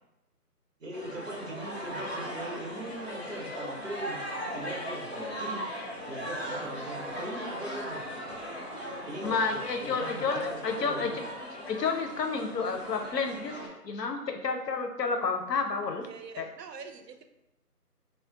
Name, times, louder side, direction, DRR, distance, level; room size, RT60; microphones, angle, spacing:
voice 1, 0.8-4.2 4.5-5.6 6.1-8.0 9.1-11.2, right 1 dB, 55° right, -1 dB, 0.7 m, -40 dB
sound 1, 0.9-13.7, equal, 45° left, 0.4 m, -38 dB
voice 2, 9.2-11.1 11.6-16.1 16.4-16.5, left 4 dB, 90° left, 5 dB, 0.7 m, -30 dB
voice 3, 16.0-17.2, right 6 dB, 85° right, 6 dB, 0.6 m, -44 dB
2.5 x 2.0 x 3.6 m, 0.91 s
figure-of-eight pair, 175°, 48 cm